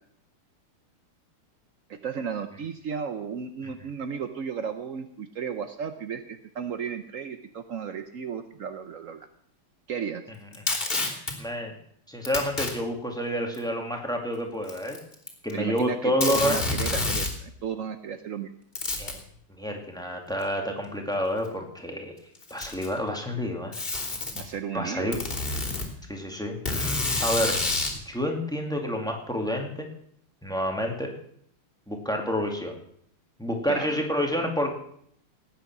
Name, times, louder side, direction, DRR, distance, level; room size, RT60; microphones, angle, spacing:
voice 1, 1.9-9.3 9.9-10.2 15.5-18.5 24.3-25.3 33.7-34.0, right 7 dB, 80° right, 9 dB, 0.7 m, -34 dB
Packing tape duct tape, 10.5-11.3 12.2-12.7 13.5-13.6 14.6-15.5 15.8-15.9 16.2-17.4 18.7-19.2 20.4-20.5 21.4-21.5 22.3-23.0 23.7-24.4 25.1-25.9 26.7-28.0, left 3 dB, 25° left, 3.3 m, -28 dB
voice 2, 11.4-11.8 12.1-15.0 15.4-16.8 19.0-19.2 19.6-22.1 22.5-23.8 24.7-25.2 26.1-26.9 27.2-27.7 28.1-29.9 30.4-31.1 31.9-32.7 33.4-34.7, equal, ahead, 2 dB, 2.1 m, -29 dB
18.5 x 9.2 x 6.1 m, 0.68 s
omnidirectional pair, 2.4 m